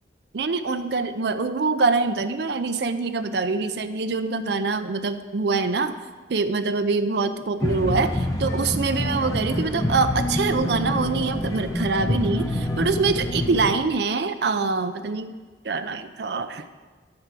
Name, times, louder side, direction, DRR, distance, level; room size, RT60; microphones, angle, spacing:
voice 1, 0.3-6.0 6.3-15.3 15.6-16.9, right 4 dB, 60° right, 10 dB, 0.5 m, -24 dB
sound 1, 7.6-13.7, left 1 dB, 20° left, 0.7 m, -26 dB
9.4 x 4.6 x 6.7 m, 1.4 s
head